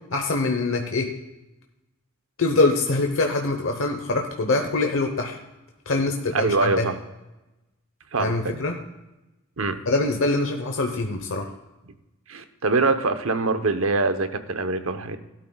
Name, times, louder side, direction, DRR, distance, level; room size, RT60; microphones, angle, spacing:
voice 1, 0.1-1.1 2.4-5.4 5.9-6.9 8.2-8.8 9.9-11.5, left 2 dB, 70° left, 3 dB, 1.0 m, -24 dB
voice 2, 6.3-7.0 8.1-8.6 9.6-9.8 12.3-15.2, right 3 dB, 75° right, 9 dB, 0.9 m, -24 dB
17.0 x 12.0 x 2.3 m, 1.0 s
head